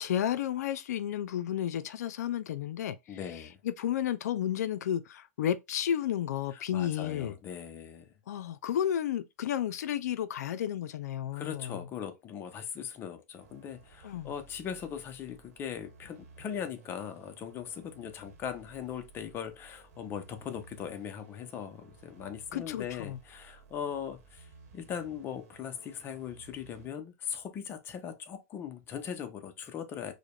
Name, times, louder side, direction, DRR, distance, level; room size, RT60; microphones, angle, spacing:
voice 1, 0.0-7.3 8.3-11.9 14.0-14.3 22.5-23.2, left 10 dB, 75° left, 0.4 m, -32 dB
voice 2, 3.1-3.6 6.5-8.1 11.3-24.5 24.7-30.1, left 8 dB, 25° left, 0.6 m, -40 dB
sound 1, 13.4-26.9, right 4 dB, 65° right, 1.0 m, -57 dB
4.7 x 2.1 x 2.3 m
hypercardioid pair, 140°, 9 cm